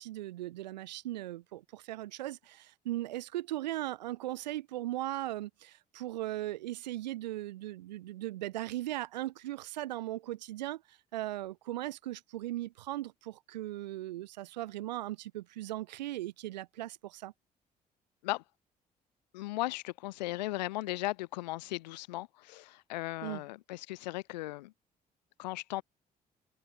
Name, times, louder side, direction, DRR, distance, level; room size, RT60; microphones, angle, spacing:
voice 1, 0.0-17.3 23.2-23.4, right 15 dB, 85° right, 3.4 m, -38 dB
voice 2, 19.3-24.7 25.4-25.8, left 19 dB, 80° left, 5.4 m, -37 dB
hypercardioid pair, 50°, 21 cm